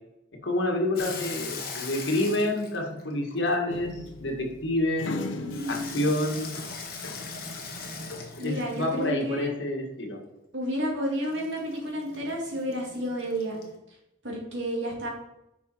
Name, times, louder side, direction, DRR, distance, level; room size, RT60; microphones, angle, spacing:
voice 1, 0.4-3.9 4.2-5.1 5.7-6.5 8.4-10.2, left 1 dB, 70° left, 1 dB, 1.8 m, -28 dB
Water tap faucet / Sink (filling or washing), 0.9-3.9 5.5-9.2 11.2-13.8, left 4 dB, 50° left, 1.5 m, -40 dB
sound 1, 3.7-7.4 7.7-8.9, left 2 dB, 85° left, 0.8 m, -39 dB
voice 2, 5.3-6.1 8.4-9.5 10.5-13.6 14.2-15.1, equal, 75° right, -1 dB, 2.5 m, -31 dB
9.5 x 5.5 x 4.5 m, 0.88 s
head